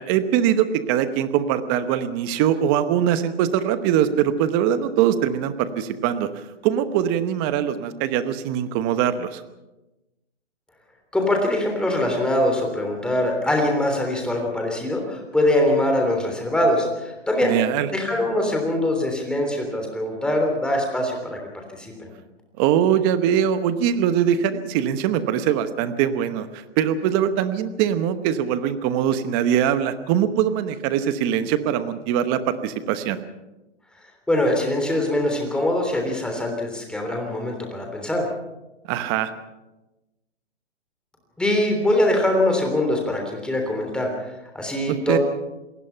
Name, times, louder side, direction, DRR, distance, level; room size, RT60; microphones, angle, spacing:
voice 1, 0.0-6.3 6.6-9.4 17.4-17.9 22.6-33.2 38.9-39.3 44.9-45.2, right 9 dB, 20° right, 12 dB, 1.0 m, -22 dB
voice 2, 11.1-17.6 17.9-21.4 21.7-22.1 34.3-38.2 41.4-45.2, left 1 dB, ahead, 2 dB, 3.3 m, -23 dB
27.5 x 19.5 x 5.8 m, 1.0 s
hypercardioid pair, 155°, 36 cm